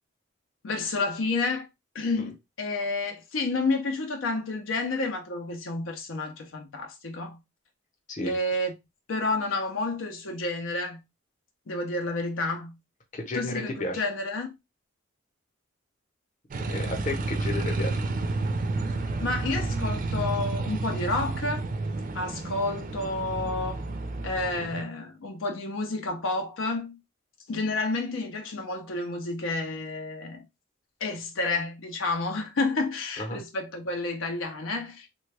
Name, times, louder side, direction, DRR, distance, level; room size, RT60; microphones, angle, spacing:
voice 1, 0.6-1.7 1.9-7.4 8.2-8.7 9.1-11.0 11.7-12.8 13.3-14.5 19.2-21.7 22.1-23.8 24.2-27.0 27.5-30.5 31.0-35.1, left 3 dB, 80° left, 0.6 m, -30 dB
voice 2, 13.1-14.0 16.7-18.0 33.2-33.4, left 2 dB, 40° left, 0.7 m, -32 dB
sound 1, 16.5-24.8, right 2 dB, 40° right, 0.4 m, -30 dB
3.2 x 2.2 x 3.2 m
head